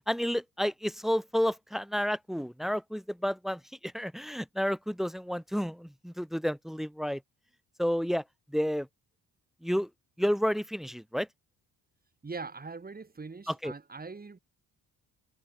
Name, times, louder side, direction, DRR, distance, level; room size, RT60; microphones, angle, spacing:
voice 1, 0.1-7.2 7.8-8.2 8.5-8.9 9.6-9.9 10.2-11.3 13.5-13.7, equal, ahead, 1.9 m, -30 dB
voice 2, 12.2-14.4, right 4 dB, 25° right, 4.1 m, -41 dB
cardioid pair, 90°, 36 cm